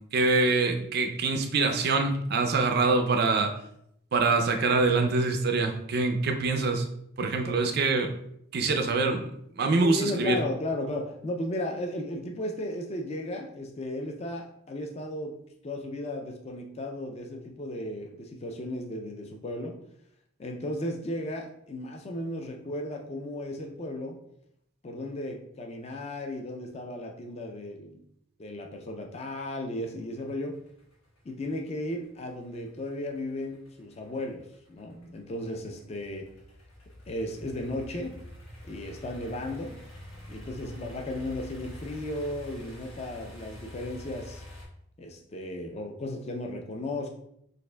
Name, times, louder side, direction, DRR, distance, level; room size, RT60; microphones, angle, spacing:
voice 1, 0.1-3.5 4.1-6.9 7.2-8.2 8.5-9.3 9.6-10.4, right 3 dB, 45° right, 5 dB, 0.4 m, -25 dB
voice 2, 9.8-15.4 15.6-19.8 20.4-24.2 24.8-28.0 28.4-30.5 31.3-34.4 34.7-36.3 37.1-38.2 38.6-39.7 40.3-44.4 45.0-47.1, left 1 dB, 30° left, 2 dB, 0.3 m, -35 dB
sound 1, 30.2-44.7, left 1 dB, 75° left, 1.3 m, -46 dB
6.3 x 2.4 x 2.2 m, 0.74 s
head